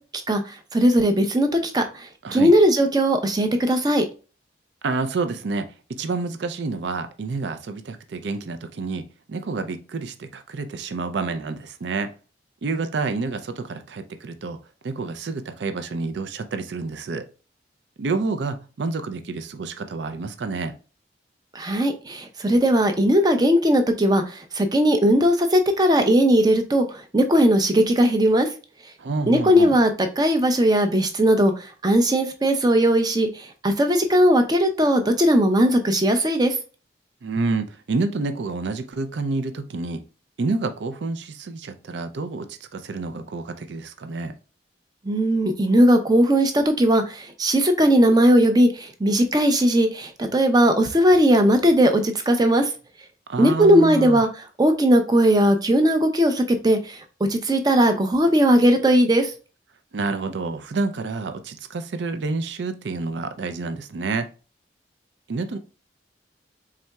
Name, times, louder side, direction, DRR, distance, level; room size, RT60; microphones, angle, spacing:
voice 1, 0.7-4.0 21.5-28.5 29.3-36.5 45.0-52.7 53.4-54.3 54.6-57.0 57.3-59.3, equal, 20° right, 0.5 m, -18 dB
voice 2, 2.2-2.5 4.8-12.1 12.6-14.6 14.8-17.2 18.0-20.7 29.0-29.8 37.2-40.0 40.4-44.3 53.3-54.2 59.9-64.3 65.3-65.6, right 3 dB, 75° right, 0.4 m, -28 dB
4.1 x 3.6 x 2.2 m
head